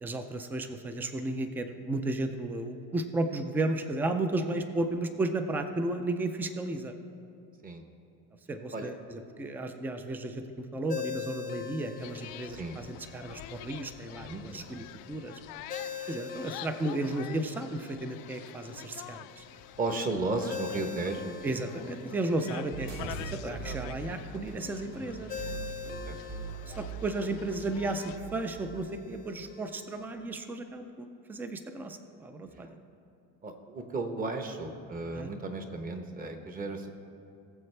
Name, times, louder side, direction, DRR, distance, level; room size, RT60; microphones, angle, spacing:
voice 1, 0.0-6.9 8.5-15.4 16.1-19.4 21.4-25.3 26.7-32.8 35.1-35.3, right 2 dB, 5° right, 8 dB, 0.3 m, -34 dB
Ringtone, 10.9-30.0, left 8 dB, 25° left, 0.6 m, -44 dB
sound 1, 12.0-28.2, left 14 dB, 65° left, 0.5 m, -47 dB
voice 2, 14.2-14.9 19.8-21.4 26.1-26.2 33.4-36.9, right 3 dB, 25° right, 6 dB, 0.9 m, -34 dB
sound 2, 22.7-28.8, right 5 dB, 55° right, 2.3 m, -41 dB
20.0 x 7.3 x 3.3 m, 2.6 s
cardioid pair, 150°, 35 cm